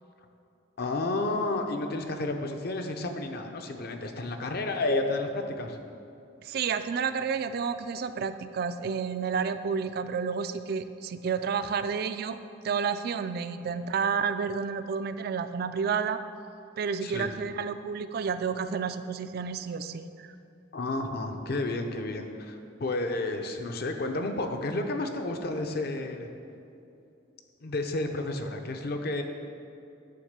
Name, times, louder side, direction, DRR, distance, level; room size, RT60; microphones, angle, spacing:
voice 1, 0.8-5.8 13.6-13.7 17.0-17.3 20.7-26.3 27.6-29.2, left 2 dB, 50° left, 5 dB, 0.6 m, -31 dB
voice 2, 6.4-12.4 12.6-16.2 16.8-20.3, right 6 dB, 50° right, 10 dB, 0.3 m, -30 dB
9.4 x 3.5 x 6.6 m, 2.7 s
head